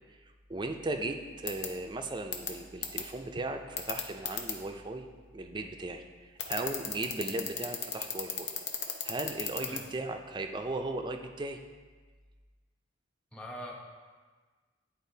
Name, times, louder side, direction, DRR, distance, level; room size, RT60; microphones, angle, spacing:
voice 1, 0.2-5.1 5.3-8.5 9.0-11.6, right 2 dB, 25° right, 5 dB, 0.4 m, -37 dB
sound 1, 1.5-1.7 2.3-2.5 2.8-3.0 3.8-4.5 6.4-9.8, left 8 dB, 65° left, 0.8 m, -33 dB
voice 2, 13.3-13.7, equal, 5° left, -1 dB, 0.8 m, -42 dB
10.5 x 4.2 x 2.7 m, 1.4 s
head